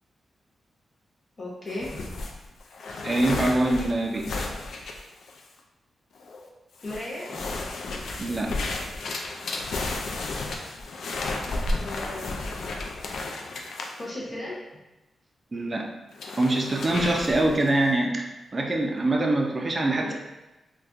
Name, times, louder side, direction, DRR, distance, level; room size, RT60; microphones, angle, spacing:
voice 1, 1.4-2.2 6.8-7.5 11.8-12.5 14.0-14.6 20.0-20.1, left 1 dB, 40° left, -6 dB, 0.7 m, -36 dB
sound 1, 1.7-5.6 6.2-6.5 6.8-14.0 16.1-17.8, left 2 dB, 80° left, 0.4 m, -33 dB
voice 2, 3.0-4.3 8.2-8.5 15.5-15.9 16.4-20.1, right 2 dB, 30° right, 1 dB, 0.4 m, -24 dB
4.1 x 2.2 x 2.4 m, 1.0 s
wide cardioid pair, 110°, 0 cm